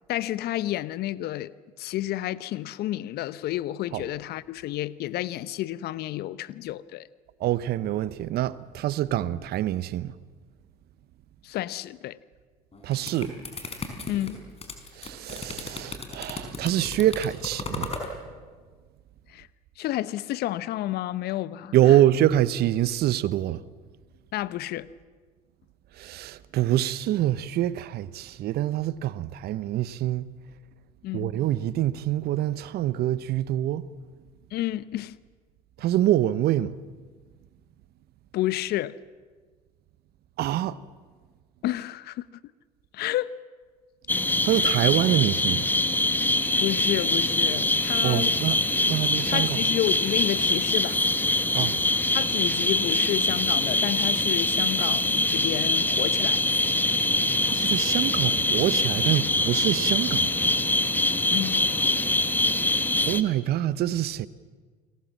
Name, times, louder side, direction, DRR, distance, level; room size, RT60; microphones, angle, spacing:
voice 1, 0.1-1.5 1.8-7.1 11.4-12.2 14.1-14.4 19.3-19.5 19.8-22.0 24.3-24.9 31.0-31.3 34.5-35.2 38.3-39.0 41.6-42.4 42.9-43.3 46.6-48.4 49.3-51.0 52.1-56.5 61.3-61.6, left 14 dB, 55° left, 0.9 m, -30 dB
voice 2, 7.4-10.1 12.8-13.3 15.0-17.9 21.7-23.6 26.0-30.3 31.1-33.8 35.8-36.8 40.4-40.8 44.4-45.7 48.0-49.6 51.5-51.8 57.4-60.5 63.0-64.3, right 13 dB, 55° right, 1.0 m, -25 dB
sound 1, 12.7-18.1, left 3 dB, 30° left, 5.3 m, -36 dB
sound 2, 44.1-63.2, left 2 dB, 10° left, 1.5 m, -24 dB
29.5 x 21.0 x 7.4 m
hypercardioid pair, 65°, 20 cm